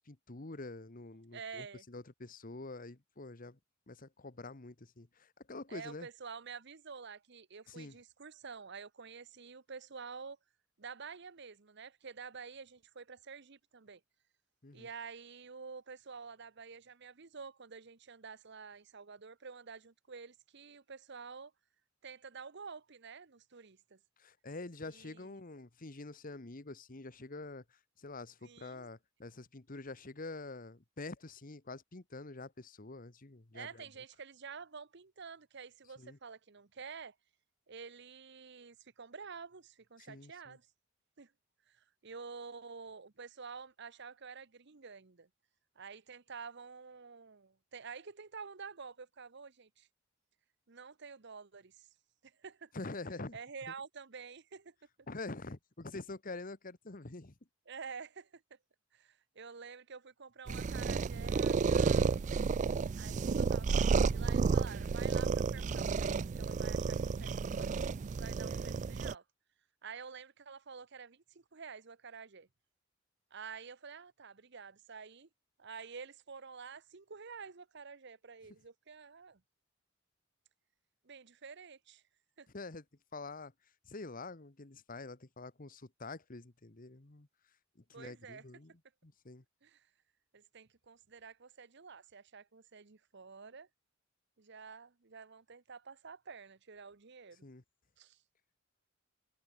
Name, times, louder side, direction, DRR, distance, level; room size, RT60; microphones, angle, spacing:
voice 1, 0.0-3.6 3.9-6.1 7.7-8.0 14.6-14.9 24.2-33.9 36.0-36.2 40.0-40.6 52.7-53.4 55.1-57.3 82.5-82.8 83.1-83.5 83.8-87.3 87.9-88.7 89.0-89.4 97.4-97.6, left 3 dB, 45° left, 1.3 m, -46 dB
voice 2, 1.3-1.8 5.7-10.4 10.8-14.0 14.7-21.5 22.0-24.0 24.9-25.3 28.4-28.9 33.5-37.1 37.7-40.7 41.2-41.3 41.7-45.3 45.8-49.9 50.7-51.9 52.2-52.7 53.3-54.7 57.7-58.6 58.9-62.2 63.0-67.7 68.1-69.2 69.8-72.5 73.3-75.3 75.6-79.4 81.0-82.0 82.4-82.5 87.9-88.4 89.6-89.9 90.3-93.7 94.4-97.4 98.0-98.2, right 5 dB, 60° right, 1.0 m, -49 dB
sound 1, 60.5-69.1, right 5 dB, 35° right, 0.3 m, -31 dB
head